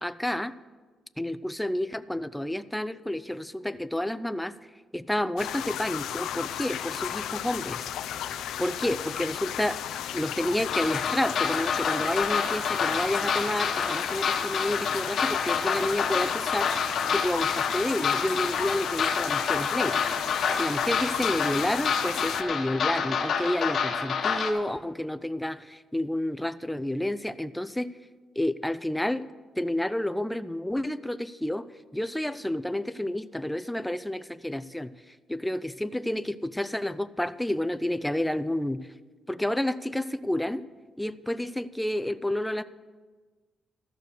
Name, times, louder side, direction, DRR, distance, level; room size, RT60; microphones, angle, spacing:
voice 1, 0.0-0.5 1.2-4.5 4.9-7.8 8.6-9.8 10.1-16.7 17.1-20.0 20.5-27.9 28.4-29.3 29.6-31.7 31.9-34.9 35.3-38.8 39.3-40.6 41.0-42.6, left 1 dB, 5° left, 14 dB, 0.4 m, -30 dB
sound 1, 5.4-22.4, left 10 dB, 90° left, 0.5 m, -34 dB
sound 2, 10.7-24.5, left 6 dB, 55° left, 1.1 m, -28 dB
13.0 x 6.6 x 6.4 m, 1.4 s
cardioid pair, 120°, 0 cm